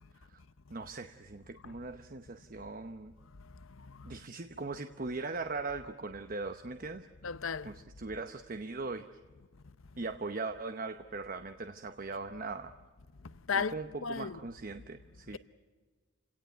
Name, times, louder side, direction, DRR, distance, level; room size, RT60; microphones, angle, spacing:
voice 1, 0.7-3.1 4.0-7.1 7.6-9.1 10.0-12.8 13.5-15.4, right 3 dB, 45° right, 0.9 m, -40 dB
voice 2, 7.2-7.7 13.5-14.4, left 6 dB, 75° left, 0.8 m, -34 dB
29.5 x 17.5 x 9.2 m
head